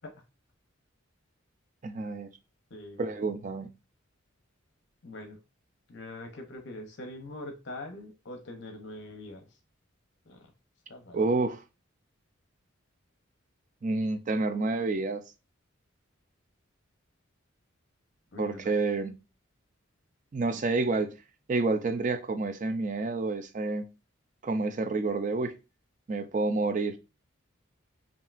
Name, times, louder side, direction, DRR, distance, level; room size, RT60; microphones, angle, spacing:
voice 1, 1.8-2.3 3.0-3.7 11.1-11.6 13.8-15.2 18.4-19.1 20.3-21.1 21.5-23.9 24.4-25.5 26.1-27.0, right 3 dB, 40° right, 0.4 m, -29 dB
voice 2, 2.7-3.0 5.0-5.4 5.9-9.5 10.3-10.5 10.9-11.2 18.3-18.8, left 1 dB, 60° left, 0.7 m, -43 dB
5.5 x 2.6 x 2.4 m
head